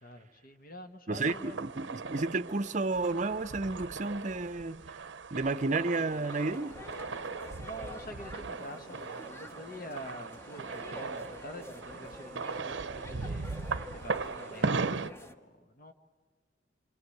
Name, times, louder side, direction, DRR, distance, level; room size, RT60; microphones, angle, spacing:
voice 1, 0.0-1.6 7.6-13.5 14.0-15.9, equal, 50° left, 1.6 m, -46 dB
voice 2, 1.1-6.8, right 3 dB, 40° right, 0.7 m, -32 dB
sound 1, 1.3-15.1, right 4 dB, 75° right, 0.7 m, -38 dB
sound 2, 6.1-15.4, left 1 dB, 15° left, 1.0 m, -48 dB
29.0 x 24.0 x 8.0 m
head